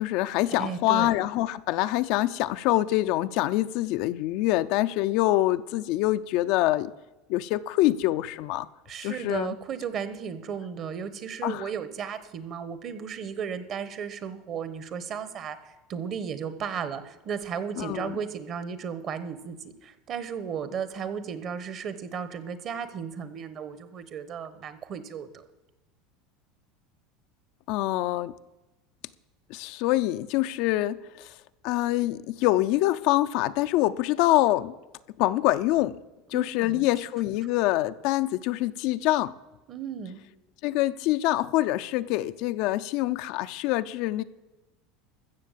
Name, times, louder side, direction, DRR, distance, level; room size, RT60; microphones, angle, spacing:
voice 1, 0.0-6.9 7.3-8.7 9.0-9.5 11.4-11.7 17.8-18.2 27.7-28.3 29.5-31.3 31.6-34.8 35.2-36.0 36.3-39.3 40.6-44.2, left 16 dB, 60° left, 0.4 m, -25 dB
voice 2, 0.6-1.1 8.9-25.4 36.3-36.8 39.7-40.2, right 7 dB, 40° right, 1.1 m, -35 dB
14.0 x 6.9 x 7.4 m
supercardioid pair, 135°, 0 cm